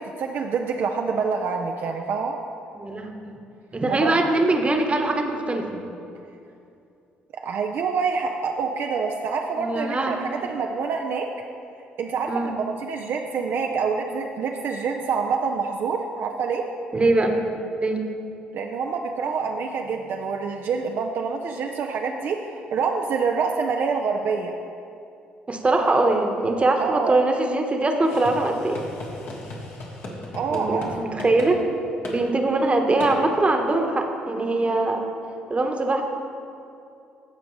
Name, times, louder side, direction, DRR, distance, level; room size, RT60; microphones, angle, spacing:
voice 1, 0.0-2.4 3.9-4.1 7.4-11.3 12.0-16.6 18.5-24.5 26.8-27.2 30.3-30.9, right 5 dB, 60° right, 2 dB, 0.5 m, -26 dB
voice 2, 2.7-3.4 3.7-5.8 9.6-10.6 12.3-12.5 16.9-17.4 17.8-18.0 25.5-28.8 30.5-31.6 32.1-35.0 35.5-36.0, right 2 dB, 30° right, 4 dB, 1.1 m, -22 dB
sound 1, 28.0-30.9 31.2-31.5 32.0-32.2 33.0-33.2, left 2 dB, 60° left, 1.6 m, -36 dB
15.0 x 5.0 x 3.2 m, 2.6 s
hypercardioid pair, 55°, 4 cm